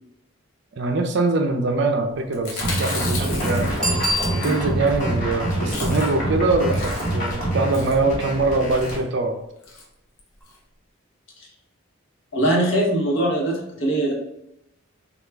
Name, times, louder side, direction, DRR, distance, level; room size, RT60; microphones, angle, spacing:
voice 1, 0.8-3.7 4.4-9.4, right 3 dB, 55° right, 5 dB, 0.4 m, -23 dB
Chewing mastication, 2.3-5.0 5.3-5.4 5.6-6.3 6.6-7.3 7.7-8.0 8.7-9.0 9.6-9.9 10.2-10.3 10.5-10.6, left 3 dB, 90° left, 0.8 m, -34 dB
sound 1, 2.6-9.0, right 1 dB, 40° left, 1.2 m, -25 dB
Bicycle bell, 3.8-5.0 10.4-10.5, equal, 5° left, 0.8 m, -26 dB
voice 2, 12.3-14.1, right 1 dB, 60° left, -1 dB, 0.9 m, -21 dB
3.4 x 2.3 x 3.3 m, 0.85 s
head